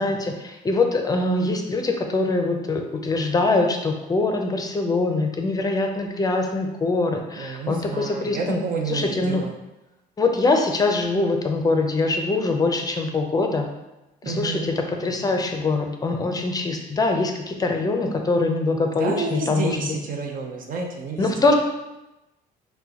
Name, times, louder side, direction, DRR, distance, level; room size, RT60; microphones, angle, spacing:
voice 1, 0.0-8.6 8.9-9.4 10.2-13.7 14.3-20.0 21.2-21.5, left 3 dB, 20° left, 3 dB, 0.5 m, -23 dB
voice 2, 7.4-9.5 14.2-14.7 18.9-21.5, right 4 dB, 55° right, 2 dB, 0.7 m, -30 dB
5.9 x 2.2 x 2.8 m, 0.97 s
cardioid pair, 110°, 17 cm